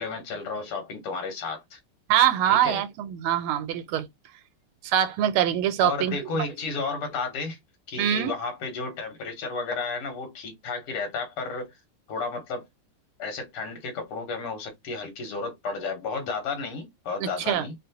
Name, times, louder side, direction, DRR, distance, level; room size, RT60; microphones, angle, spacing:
voice 1, 0.0-1.8 2.5-2.8 5.8-7.6 7.9-11.7 12.1-12.7 13.2-17.7, left 4 dB, 90° left, 2.1 m, -32 dB
voice 2, 2.1-4.1 4.8-6.2 8.0-8.3 17.2-17.7, right 11 dB, 85° right, 1.5 m, -23 dB
4.2 x 2.0 x 2.8 m
omnidirectional pair, 2.3 m